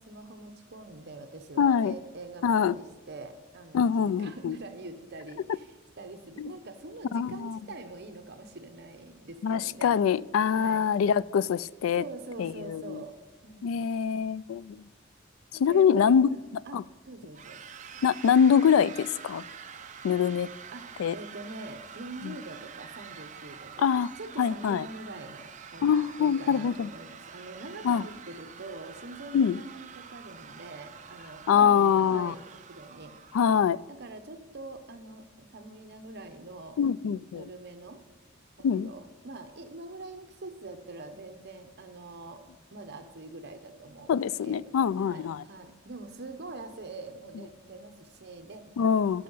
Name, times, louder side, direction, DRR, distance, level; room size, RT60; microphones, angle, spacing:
voice 1, 0.0-5.7 6.0-10.0 10.5-10.9 11.9-13.1 13.4-13.8 15.5-16.4 16.7-17.6 20.7-20.9 21.1-33.2 33.9-36.8 37.3-38.0 38.6-42.4 42.7-48.7, right 2 dB, 55° right, 7 dB, 0.9 m, -44 dB
voice 2, 1.6-1.9 2.4-2.8 3.7-4.6 6.4-6.5 7.1-7.6 9.4-12.0 12.4-13.0 13.6-14.9 15.6-16.3 16.7-16.8 18.0-19.4 20.0-20.5 21.0-21.1 22.2-22.3 23.8-24.1 24.4-24.8 25.8-26.9 27.8-28.0 29.3-29.6 31.5-32.3 33.3-33.8 36.8-37.4 38.6-38.9 44.1-45.4 48.8-49.2, left 7 dB, 85° left, 20 dB, 0.3 m, -24 dB
sound 1, 17.4-33.7, right 7 dB, 35° right, 0.6 m, -47 dB
12.5 x 5.7 x 5.5 m, 1.3 s
head